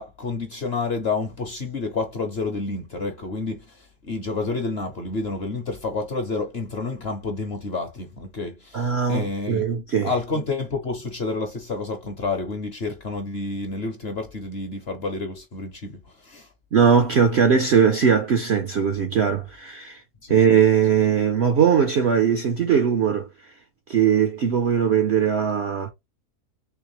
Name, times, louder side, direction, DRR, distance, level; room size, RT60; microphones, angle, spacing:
voice 1, 0.0-9.6 10.0-16.5 20.2-20.4, left 3 dB, 50° left, 0.8 m, -29 dB
voice 2, 8.7-10.1 16.7-20.0 20.3-23.3 23.9-25.9, right 7 dB, 60° right, 0.7 m, -20 dB
3.6 x 3.3 x 3.0 m
omnidirectional pair, 1.8 m